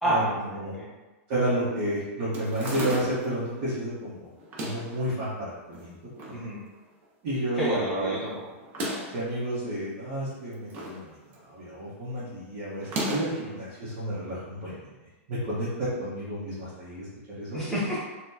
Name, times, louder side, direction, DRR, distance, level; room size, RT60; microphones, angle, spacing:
voice 1, 0.0-0.9 6.3-6.6 7.6-8.4 13.5-13.6 17.5-18.0, right 1 dB, 5° left, -8 dB, 0.8 m, -28 dB
voice 2, 1.3-4.3 4.6-6.1 7.2-8.1 9.1-11.2 11.4-14.9 15.3-17.6, right 1 dB, 40° right, -11 dB, 1.1 m, -31 dB
sound 1, 2.3-3.4 4.4-5.0 5.7-6.4 6.8-6.9 7.0-7.1 8.6-9.2 10.3-11.0 11.3-11.7 12.8-13.5, equal, 25° right, 0.5 m, -34 dB
4.1 x 2.2 x 2.7 m, 1.2 s
supercardioid pair, 170°, 8 cm